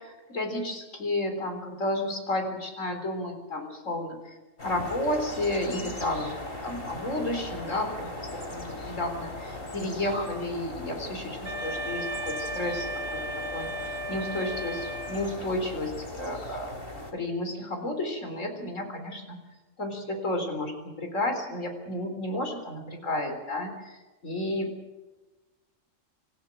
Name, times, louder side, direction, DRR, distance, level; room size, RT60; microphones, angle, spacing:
voice 1, 0.0-4.2 4.6-6.4 6.6-16.8 17.1-19.4 19.8-24.7, left 1 dB, 75° left, 5 dB, 4.3 m, -32 dB
sound 1, 4.6-17.1, left 2 dB, 45° left, 3.2 m, -39 dB
Wind instrument woodwind instrument, 11.4-15.6, right 1 dB, 65° right, 2.2 m, -35 dB
26.0 x 14.5 x 7.6 m, 1.2 s
omnidirectional pair, 1.3 m